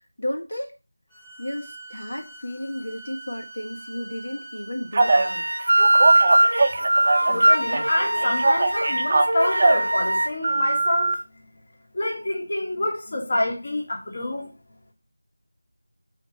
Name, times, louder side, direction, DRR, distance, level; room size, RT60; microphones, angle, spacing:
voice 1, 0.2-0.7 1.4-5.5, left 1 dB, 75° left, 1.7 m, -33 dB
sound 1, 1.1-6.8, right 2 dB, 10° left, 1.5 m, -44 dB
Telephone, 4.9-5.3 5.8-7.4 7.7-9.9 10.4-11.1, right 3 dB, 35° right, 0.7 m, -21 dB
sound 2, 5.0-10.3, right 1 dB, 75° right, 0.5 m, -21 dB
voice 2, 7.3-11.2 11.9-14.5, left 1 dB, 40° left, 1.7 m, -27 dB
5.8 x 3.8 x 5.3 m
figure-of-eight pair, 170°, 0 cm